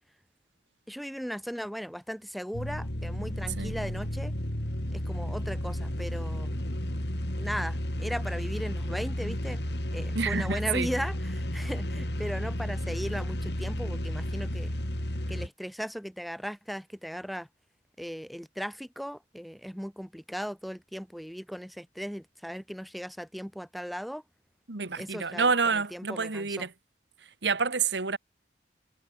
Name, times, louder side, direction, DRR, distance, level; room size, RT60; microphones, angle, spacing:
voice 1, 0.9-4.3 4.9-6.6 7.4-9.6 9.9-14.8 15.3-17.5 18.0-24.2 24.9-26.7, equal, ahead, 2.6 m, -37 dB
sound 1, 2.5-15.5, equal, 65° left, 4.9 m, -32 dB
voice 2, 10.1-10.9 24.7-26.7 27.4-28.2, right 5 dB, 70° right, 1.6 m, -28 dB
head